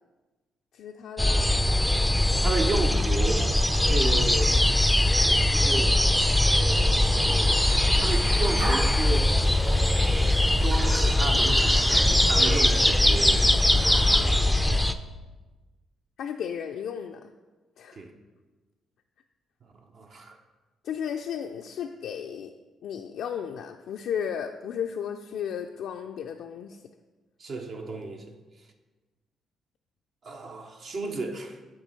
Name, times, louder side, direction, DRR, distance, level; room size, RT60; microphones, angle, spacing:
voice 1, 0.7-1.6 16.2-17.3 17.8-18.1 20.8-22.5 22.8-26.8, left 8 dB, 75° left, 4 dB, 0.3 m, -34 dB
sound 1, 1.2-14.9, left 1 dB, ahead, 0.4 m, -21 dB
voice 2, 2.4-4.6 5.1-6.0 7.2-7.7 8.0-9.4 10.6-13.6 14.0-14.6 17.9-18.1 19.9-20.4 27.4-28.3 30.2-31.6, right 3 dB, 55° right, 3 dB, 0.7 m, -33 dB
sound 2, 7.1-14.2, right 2 dB, 80° right, 2.4 m, -39 dB
8.2 x 3.1 x 6.2 m, 1.2 s
cardioid pair, 90°, 0 cm